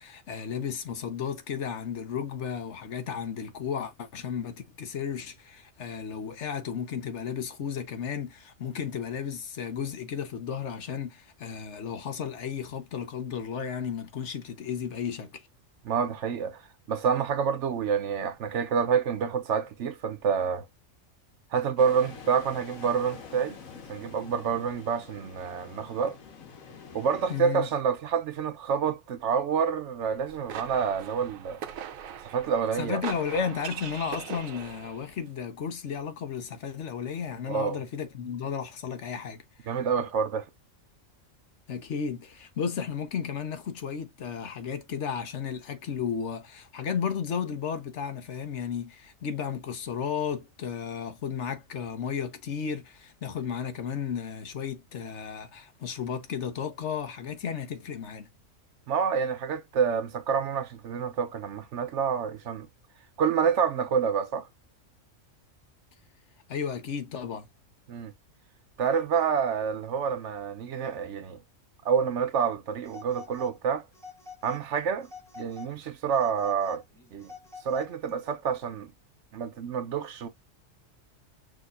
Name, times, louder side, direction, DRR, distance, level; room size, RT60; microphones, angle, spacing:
voice 1, 0.0-15.5 27.3-27.7 32.8-39.7 41.7-58.3 66.5-67.5, left 7 dB, 65° left, 1.1 m, -34 dB
voice 2, 15.9-16.6 16.9-20.6 21.5-23.6 23.9-26.2 26.9-31.6 32.2-33.0 37.5-37.8 39.7-40.5 58.9-62.7 63.2-64.5 67.9-68.1 68.8-71.4 71.8-73.8 74.4-75.1 75.4-76.8 77.1-77.3 77.6-78.9 79.3-80.3, right 6 dB, 65° right, 1.0 m, -28 dB
sound 1, 21.8-27.4, left 6 dB, 85° left, 1.5 m, -46 dB
sound 2, 30.1-35.1, right 9 dB, 85° right, 1.1 m, -40 dB
Telephone, 72.8-73.6 73.9-74.7 75.0-75.7 76.1-78.1, left 5 dB, ahead, 1.4 m, -46 dB
6.3 x 2.9 x 2.5 m
omnidirectional pair, 1.4 m